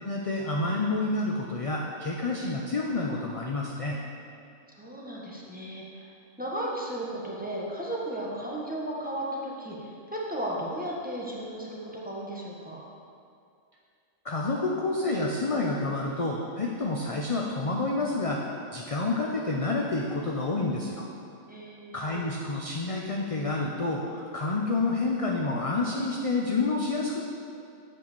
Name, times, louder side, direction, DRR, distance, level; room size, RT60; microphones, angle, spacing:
voice 1, 0.0-4.0 14.2-21.1 21.9-27.2, left 2 dB, 40° left, -1 dB, 0.5 m, -29 dB
voice 2, 4.8-6.1 6.4-12.8 21.5-21.9, right 1 dB, 5° right, -5 dB, 1.2 m, -35 dB
7.9 x 5.7 x 6.7 m, 2.4 s
omnidirectional pair, 1.4 m